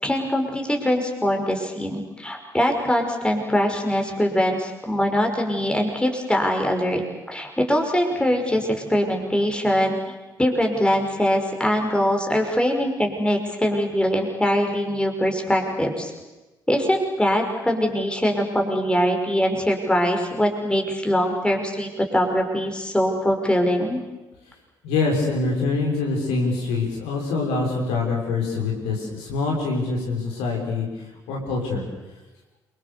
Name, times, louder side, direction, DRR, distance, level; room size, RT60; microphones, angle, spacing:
voice 1, 0.0-7.0 7.3-16.1 16.7-24.0, equal, 10° left, 2 dB, 5.7 m, -22 dB
voice 2, 24.8-31.8, left 3 dB, 65° left, -1 dB, 5.9 m, -25 dB
28.0 x 24.0 x 7.0 m, 1.1 s
figure-of-eight pair, 45°, 11 cm